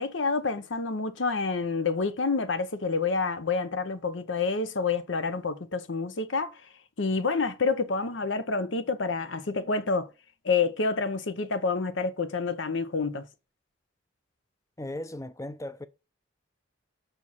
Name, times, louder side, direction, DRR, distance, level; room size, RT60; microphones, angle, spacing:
voice 1, 0.0-6.5 7.0-10.1 10.4-13.2, left 4 dB, 75° left, 0.8 m, -28 dB
voice 2, 14.8-15.9, left 1 dB, 15° left, 0.5 m, -37 dB
6.7 x 6.0 x 4.1 m
head